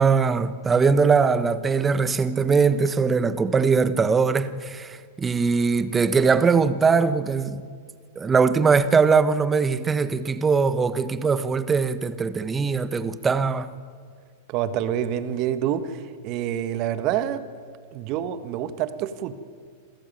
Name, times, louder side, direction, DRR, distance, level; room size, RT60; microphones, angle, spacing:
voice 1, 0.0-7.7 8.1-13.7, right 5 dB, 20° right, 1.3 m, -21 dB
voice 2, 14.5-17.4 17.9-19.3, right 10 dB, 45° right, 1.7 m, -27 dB
27.5 x 15.0 x 9.3 m
hypercardioid pair, 110°, 0 cm